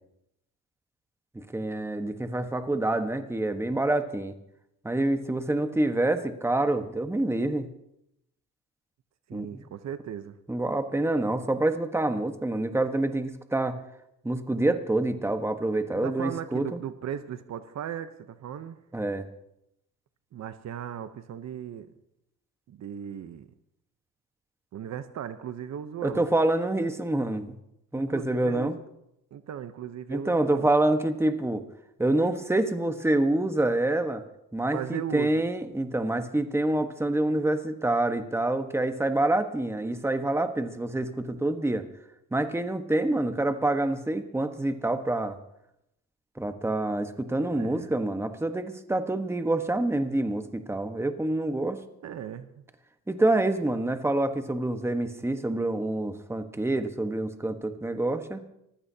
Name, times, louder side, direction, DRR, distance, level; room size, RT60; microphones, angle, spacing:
voice 1, 1.3-4.3 4.8-7.7 9.3-9.6 10.5-13.8 14.2-16.8 18.9-19.3 26.0-27.5 27.9-28.8 30.1-31.6 32.0-34.2 34.5-41.8 42.3-45.4 46.4-51.8 53.1-58.4, right 2 dB, 10° right, 8 dB, 1.3 m, -27 dB
voice 2, 9.3-10.4 15.9-18.8 20.3-21.9 22.7-23.5 24.7-26.3 27.9-28.8 29.3-30.7 34.7-35.4 47.5-47.9 52.0-52.6, right 9 dB, 65° right, 11 dB, 0.9 m, -37 dB
24.5 x 15.5 x 2.8 m, 0.83 s
cardioid pair, 90°, 30 cm